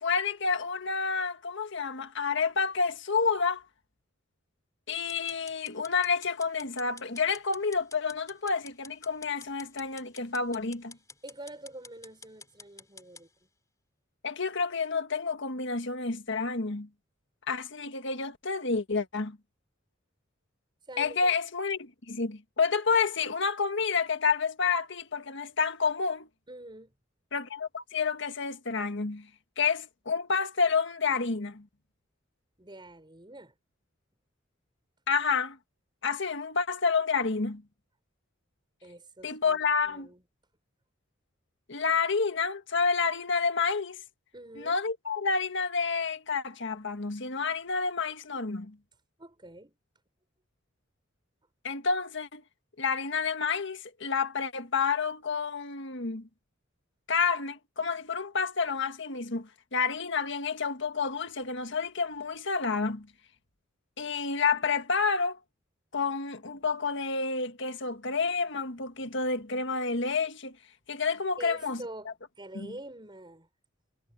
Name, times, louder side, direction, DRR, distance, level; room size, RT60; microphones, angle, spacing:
voice 1, 0.0-3.6 4.9-11.0 14.2-16.9 17.5-19.4 21.0-26.3 27.3-29.3 29.6-31.7 35.1-35.6 36.0-37.6 39.2-40.1 41.7-44.0 44.6-48.8 51.6-52.4 52.8-56.3 57.1-63.1 64.0-65.4 65.9-70.6 70.9-72.1 72.5-72.7, left 5 dB, 60° left, 1.7 m, -29 dB
sound 1, 5.1-13.3, left 4 dB, 15° left, 3.2 m, -50 dB
voice 2, 11.2-13.3 20.8-21.4 26.5-26.9 32.6-33.5 38.8-40.2 44.3-44.8 49.2-49.8 71.4-73.5, right 1 dB, 25° right, 5.5 m, -46 dB
head